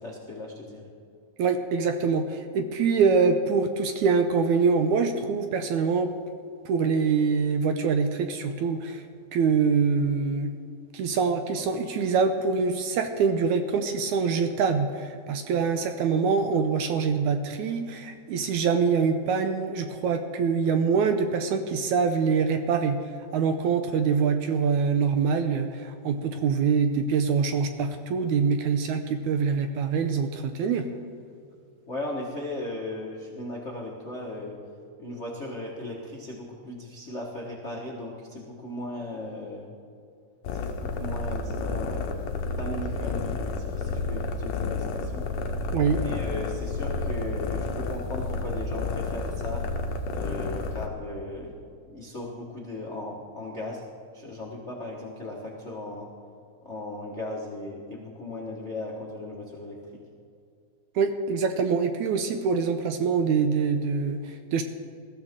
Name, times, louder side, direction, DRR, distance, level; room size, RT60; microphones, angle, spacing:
voice 1, 0.0-0.9 31.9-34.6 35.0-39.7 40.5-42.2 42.6-45.3 45.8-49.6 50.1-51.6 51.8-53.8 54.1-56.1 56.6-59.8, left 2 dB, 50° left, -3 dB, 0.8 m, -37 dB
voice 2, 1.4-6.1 6.7-9.0 9.3-10.5 10.9-23.0 23.3-30.9 45.7-46.0 61.0-64.6, right 5 dB, 75° right, 7 dB, 1.9 m, -24 dB
sound 1, 40.4-50.9, left 3 dB, 65° left, 1.9 m, -30 dB
21.0 x 14.0 x 3.7 m, 2.4 s
omnidirectional pair, 3.9 m